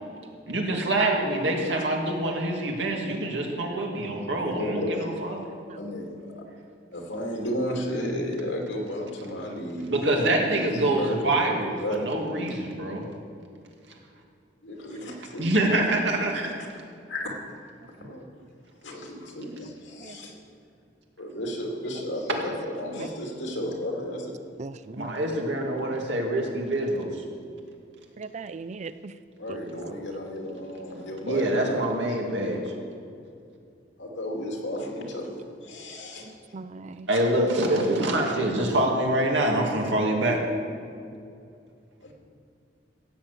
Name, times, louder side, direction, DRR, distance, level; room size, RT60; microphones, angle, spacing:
voice 1, 0.5-5.4 9.9-13.0 15.4-16.5 25.0-27.2 31.2-32.7 37.1-40.4, right 1 dB, 75° right, 0 dB, 2.4 m, -25 dB
voice 2, 4.3-5.1 5.7-6.4 6.9-12.0 14.6-15.5 16.6-16.7 17.1-17.4 18.0-18.3 18.8-20.4 21.2-24.4 29.4-31.8 32.1-32.2 34.0-36.3 37.1-37.2 38.2-38.3 42.0-42.1, equal, 85° left, 0 dB, 2.6 m, -33 dB
voice 3, 24.6-25.1 28.2-29.1 29.5-29.6 36.5-37.1 38.6-38.7, right 4 dB, 40° right, 13 dB, 0.4 m, -38 dB
16.0 x 7.3 x 8.3 m, 2.4 s
head